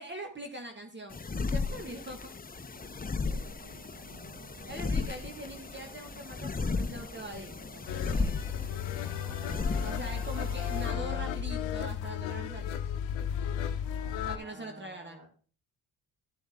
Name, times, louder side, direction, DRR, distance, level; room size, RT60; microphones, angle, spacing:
voice 1, 0.0-2.3 4.7-8.4 9.8-12.8 14.3-15.2, right 1 dB, 25° right, 4 dB, 1.4 m, -42 dB
sound 1, 1.1-10.9, left 4 dB, 20° left, 0.8 m, -35 dB
voice 2, 2.5-5.2 9.0-11.6 13.9-15.3, right 3 dB, 85° right, 0 dB, 3.4 m, -52 dB
Wind instrument woodwind instrument, 3.3-10.7, right 6 dB, 45° right, 5.0 m, -56 dB
sound 2, 7.9-14.4, left 8 dB, 90° left, 0.8 m, -34 dB
12.0 x 7.0 x 3.5 m, 0.39 s
supercardioid pair, 50°, 43 cm